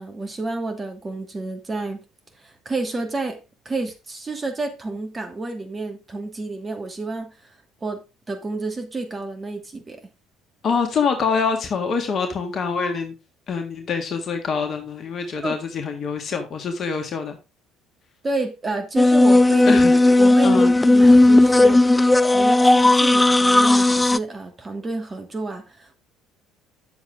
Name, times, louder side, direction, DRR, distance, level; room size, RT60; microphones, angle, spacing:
voice 1, 0.0-2.0 2.4-3.4 3.6-7.4 7.8-8.0 8.3-10.0 15.4-15.6 18.2-19.8 20.2-21.8 22.3-25.9, right 3 dB, 25° right, 2.4 m, -30 dB
voice 2, 10.6-13.1 13.5-17.4 19.6-19.9 20.4-20.7, left 5 dB, 45° left, 1.7 m, -25 dB
sound 1, 19.0-24.2, left 2 dB, 15° left, 0.4 m, -15 dB
8.7 x 7.3 x 3.8 m
figure-of-eight pair, 60°, 0 cm